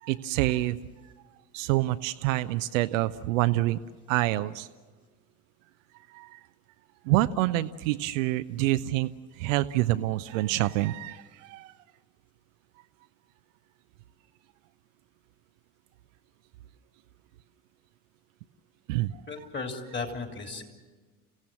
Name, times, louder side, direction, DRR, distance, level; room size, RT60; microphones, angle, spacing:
voice 1, 0.0-0.8 1.5-3.8 4.1-4.7 6.1-6.4 7.0-11.7 18.9-19.2, right 16 dB, 60° right, 12 dB, 0.7 m, -27 dB
voice 2, 19.3-20.6, left 4 dB, 25° left, 4 dB, 3.4 m, -35 dB
29.5 x 16.5 x 7.6 m, 1.4 s
figure-of-eight pair, 65°, 44 cm